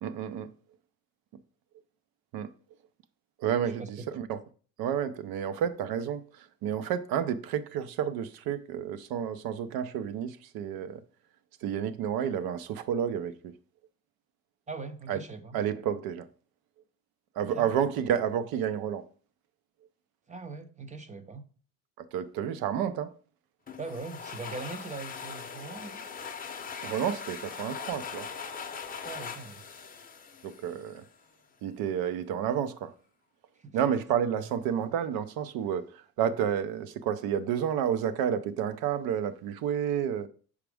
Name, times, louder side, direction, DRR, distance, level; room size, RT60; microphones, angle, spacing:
voice 1, 0.0-0.5 2.3-2.5 3.4-4.4 4.8-11.0 11.6-13.5 15.1-15.2 15.5-16.3 17.4-19.0 22.1-23.1 26.8-28.3 30.4-31.0 31.6-32.9 33.7-40.3, right 9 dB, 55° right, 0.8 m, -30 dB
voice 2, 14.7-15.6 17.4-17.7 20.3-21.4 23.8-26.1 29.0-29.6 33.6-33.8 34.4-34.5, right 3 dB, 15° right, 0.6 m, -41 dB
sound 1, 23.7-31.1, left 6 dB, 20° left, 0.7 m, -41 dB
6.0 x 4.9 x 3.5 m
supercardioid pair, 115°, 42 cm